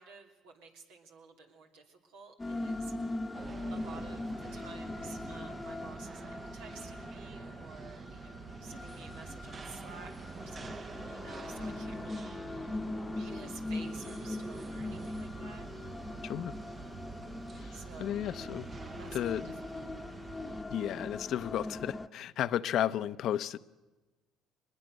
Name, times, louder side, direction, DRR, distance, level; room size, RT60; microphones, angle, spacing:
voice 1, 0.0-3.3 3.7-15.7 17.7-18.2 19.0-19.4 19.7-19.8, right 4 dB, 90° right, 2 dB, 2.9 m, -52 dB
sound 1, 2.4-22.1, left 2 dB, 20° left, 0.9 m, -41 dB
sound 2, 3.3-20.6, right 5 dB, 40° right, 1.0 m, -46 dB
voice 2, 17.6-18.7 19.1-19.5 20.7-23.6, left 11 dB, 65° left, 14 dB, 0.7 m, -33 dB
23.0 x 21.0 x 6.5 m, 1.2 s
supercardioid pair, 75°, 0 cm